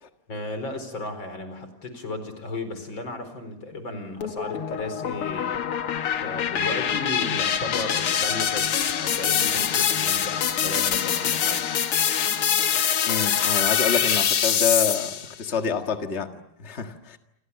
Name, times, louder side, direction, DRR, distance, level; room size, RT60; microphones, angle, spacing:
voice 1, 0.3-11.7, left 2 dB, 30° left, 9 dB, 4.9 m, -35 dB
sound 1, 4.2-15.3, left 8 dB, 70° left, 1.3 m, -24 dB
voice 2, 13.1-17.2, left 6 dB, 90° left, 5 dB, 0.6 m, -27 dB
29.0 x 26.5 x 7.1 m, 0.75 s
omnidirectional pair, 4.4 m